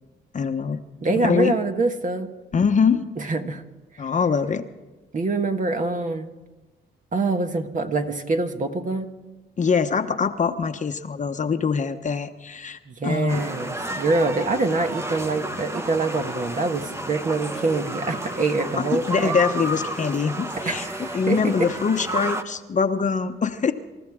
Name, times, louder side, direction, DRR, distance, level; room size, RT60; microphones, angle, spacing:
voice 1, 0.3-0.8 1.1-1.5 2.5-3.0 4.0-4.6 9.6-13.4 18.8-20.9 21.1-23.7, left 5 dB, 40° left, 8 dB, 1.0 m, -23 dB
voice 2, 1.0-2.3 3.2-3.6 5.1-6.3 7.1-9.1 12.9-19.3 20.6-21.5, right 3 dB, 40° right, 5 dB, 1.6 m, -25 dB
sound 1, 13.3-22.4, right 1 dB, 15° right, 1.2 m, -32 dB
27.0 x 13.5 x 3.7 m, 1.1 s
cardioid pair, 90°, 20 cm